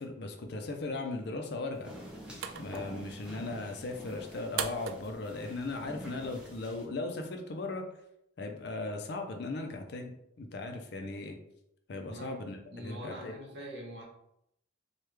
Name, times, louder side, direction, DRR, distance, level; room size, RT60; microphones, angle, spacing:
voice 1, 0.0-1.9 2.6-7.8 8.4-11.4 11.9-13.3, left 2 dB, 55° left, 5 dB, 0.4 m, -38 dB
sound 1, 1.7-6.8, right 8 dB, 80° right, 0.3 m, -43 dB
sound 2, 1.8-6.9, equal, 5° right, 0.5 m, -47 dB
voice 2, 12.1-12.4 12.7-14.0, equal, 55° right, -2 dB, 0.9 m, -44 dB
3.1 x 2.3 x 3.2 m, 0.76 s
head